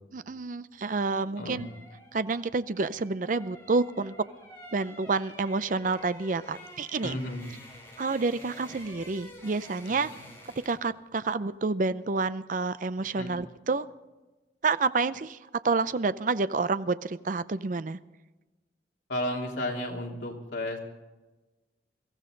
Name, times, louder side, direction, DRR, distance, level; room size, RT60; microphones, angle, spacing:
voice 1, 0.1-1.7 2.1-4.1 4.7-7.2 8.0-10.1 10.7-13.9 14.6-15.4 15.6-18.0, right 3 dB, 45° right, 15 dB, 0.5 m, -29 dB
sound 1, 0.9-10.9 11.2-11.4, left 1 dB, 15° left, 4.4 m, -50 dB
voice 2, 7.0-7.6 9.9-10.2 13.2-13.4 19.1-20.8, left 1 dB, 80° left, -1 dB, 3.1 m, -33 dB
23.0 x 15.0 x 3.9 m, 1.2 s
head